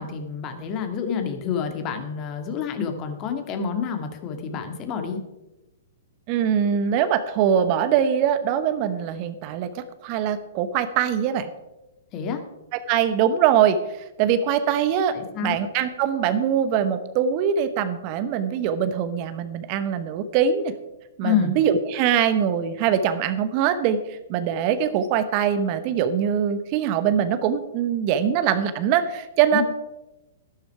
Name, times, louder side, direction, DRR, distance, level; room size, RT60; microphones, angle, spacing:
voice 1, 0.0-5.2 12.1-12.4 15.1-15.5 21.2-21.5 29.5-29.6, left 7 dB, 35° left, 6 dB, 1.9 m, -28 dB
voice 2, 6.3-11.5 12.9-13.8 14.2-15.2 15.4-20.7 21.2-29.6, right 8 dB, 40° right, 11 dB, 1.0 m, -22 dB
12.0 x 11.5 x 4.8 m, 0.99 s
figure-of-eight pair, 115°, 0 cm